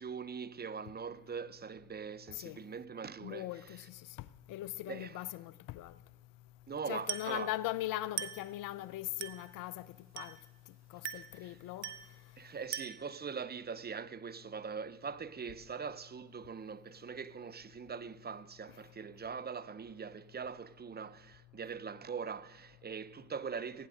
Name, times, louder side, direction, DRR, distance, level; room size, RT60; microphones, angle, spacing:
voice 1, 0.0-3.9 4.9-5.2 6.7-7.5 11.1-11.6 12.4-23.9, right 6 dB, 30° right, 0.6 m, -42 dB
voice 2, 3.2-5.9 6.9-10.4 10.9-11.9, left 15 dB, 70° left, 0.6 m, -40 dB
Glass, 7.1-7.4 8.2-8.5 9.2-9.5 10.2-10.5 11.0-11.4 11.8-12.2 12.7-13.1, right 9 dB, 50° right, 1.1 m, -41 dB
17.5 x 9.8 x 6.3 m
hypercardioid pair, 55°, 34 cm